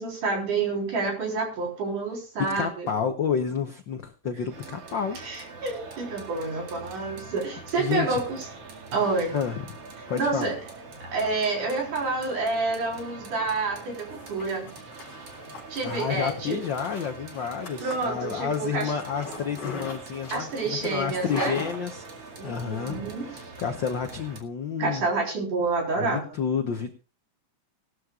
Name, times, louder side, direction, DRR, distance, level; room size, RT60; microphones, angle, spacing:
voice 1, 0.0-2.9 5.2-8.5 8.9-9.4 10.2-10.6 11.0-14.7 15.7-16.6 17.8-18.9 20.3-21.6 22.4-23.3 24.8-26.2, right 3 dB, 85° right, 0 dB, 5.4 m, -28 dB
voice 2, 2.4-5.2 7.0-7.1 7.8-8.2 9.3-9.6 10.1-10.5 15.8-25.1 26.0-27.0, left 7 dB, 70° left, 6 dB, 1.0 m, -30 dB
sound 1, 4.5-24.4, right 3 dB, 55° right, 3.0 m, -43 dB
Zipper (clothing), 13.8-22.5, left 4 dB, 55° left, 5.0 m, -40 dB
19.5 x 13.0 x 2.4 m, 0.32 s
omnidirectional pair, 3.4 m